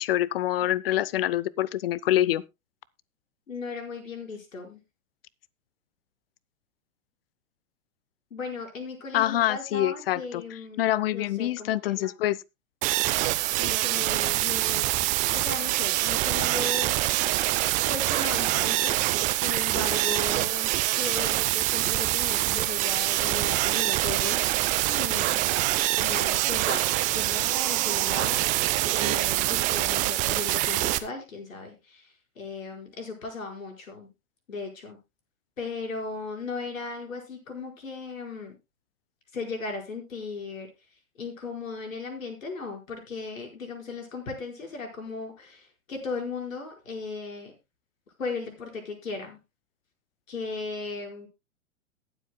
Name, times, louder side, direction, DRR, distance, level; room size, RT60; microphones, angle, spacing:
voice 1, 0.0-2.4 9.1-10.4 10.8-12.4, left 13 dB, 45° left, 0.6 m, -25 dB
voice 2, 3.5-4.8 8.3-10.8 11.1-12.1 13.6-14.9 15.3-17.0 17.9-19.0 19.3-25.5 26.0-34.1 34.5-35.0 35.6-38.5 39.3-40.7 41.2-47.5 48.2-49.4 50.3-51.3, left 4 dB, 70° left, 4.9 m, -37 dB
sound 1, 12.8-31.0, right 17 dB, 20° right, 0.6 m, -25 dB
22.0 x 7.8 x 2.2 m
figure-of-eight pair, 110°, 42 cm